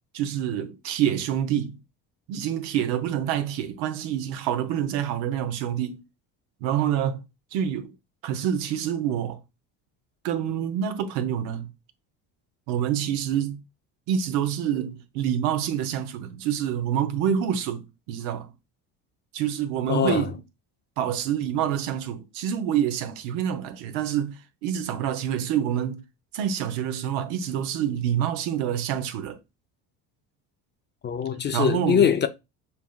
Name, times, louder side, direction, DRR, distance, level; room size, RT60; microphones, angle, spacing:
voice 1, 0.1-1.8 2.3-6.0 6.6-7.2 7.5-7.9 8.2-9.4 10.2-11.7 12.7-13.6 14.1-18.5 19.3-20.3 21.0-26.0 26.3-29.4 31.5-32.0, right 9 dB, 75° right, 0.8 m, -27 dB
voice 2, 19.9-20.3 31.0-32.3, left 8 dB, 30° left, 0.4 m, -22 dB
6.9 x 2.6 x 2.3 m
supercardioid pair, 80°, 39 cm